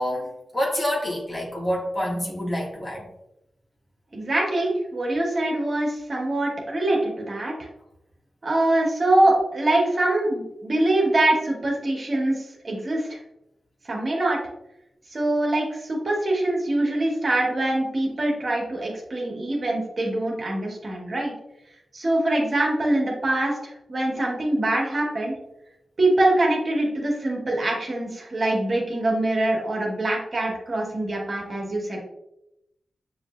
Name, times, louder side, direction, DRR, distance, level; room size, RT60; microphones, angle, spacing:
voice 1, 0.0-3.1, equal, 35° left, -2 dB, 1.6 m, -27 dB
voice 2, 4.1-7.7 8.4-13.2 13.8-14.4 15.1-21.3 21.9-25.3 26.0-32.0, right 1 dB, 50° right, -1 dB, 1.3 m, -24 dB
6.4 x 2.8 x 2.5 m, 0.85 s
cardioid pair, 45°, 0 cm